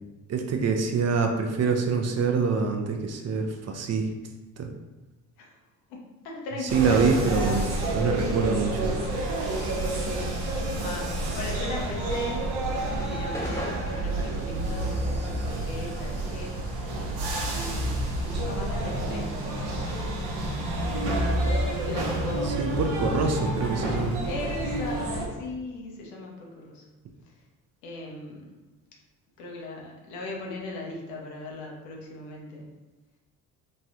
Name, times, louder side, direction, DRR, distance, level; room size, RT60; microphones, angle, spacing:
voice 1, 0.3-4.1 4.6-4.7 6.7-9.0 22.4-24.2, right 5 dB, 40° right, 4 dB, 0.5 m, -25 dB
voice 2, 6.2-7.0 10.8-12.5 13.1-16.6 17.5-19.4 20.8-21.3 21.6-23.0 24.2-26.8 27.8-28.5 29.4-32.7, left 2 dB, 85° left, -1 dB, 0.7 m, -38 dB
sound 1, 6.7-25.3, right 1 dB, 65° right, 0.8 m, -29 dB
sound 2, 11.9-16.6 16.9-18.9, equal, 5° left, 0.6 m, -42 dB
3.1 x 2.3 x 2.7 m, 1.1 s
hypercardioid pair, 60°, 43 cm